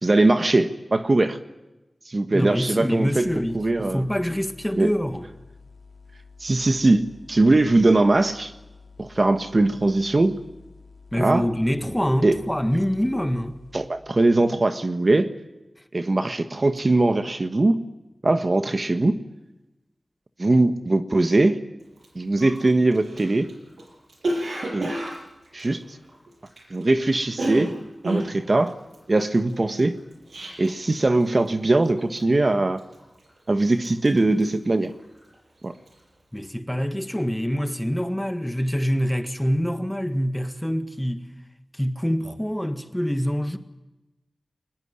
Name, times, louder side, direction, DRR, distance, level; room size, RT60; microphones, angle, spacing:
voice 1, 0.0-1.4 2.1-3.3 3.5-4.0 4.8-4.9 6.4-8.5 9.0-10.4 11.2-11.5 12.2-12.4 13.7-15.3 15.9-17.8 18.2-19.1 20.4-21.6 22.1-23.5 24.7-25.0 25.5-25.8 26.7-27.7 28.1-28.7 29.1-30.0 30.6-32.8 33.5-34.9 35.6-35.7, right 2 dB, 40° right, 1.4 m, -21 dB
voice 2, 2.3-5.3 11.1-13.5 36.3-41.2 41.7-43.6, equal, 5° left, 1.7 m, -25 dB
sound 1, 3.2-13.9, left 4 dB, 45° left, 4.4 m, -49 dB
Cough, 22.0-22.1 22.4-26.8 27.1-30.9 31.2-31.6 31.8-32.3 32.8-33.4 33.7-35.4 35.7-36.0, right 1 dB, 75° right, 7.2 m, -31 dB
22.5 x 20.5 x 9.8 m
wide cardioid pair, 90°, 0 cm